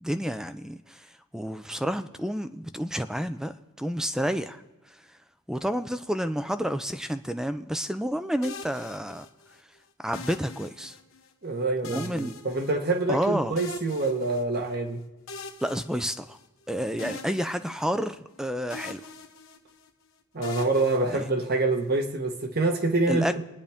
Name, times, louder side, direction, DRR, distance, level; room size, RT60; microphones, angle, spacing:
voice 1, 0.0-1.1 1.3-4.6 5.5-9.3 10.0-11.0 11.8-12.3 13.1-13.5 15.6-16.4 16.7-19.0 21.1-21.3 23.1-23.4, equal, 5° right, 10 dB, 0.5 m, -30 dB
sound 1, 8.4-9.6 10.1-11.3 11.8-13.2 13.6-14.7 15.3-16.6 17.0-18.4 18.7-19.9 20.4-21.8, left 3 dB, 65° left, 1.2 m, -43 dB
voice 2, 11.4-15.0 20.3-23.4, right 2 dB, 45° right, 5 dB, 1.4 m, -26 dB
27.0 x 10.0 x 3.6 m, 1.1 s
head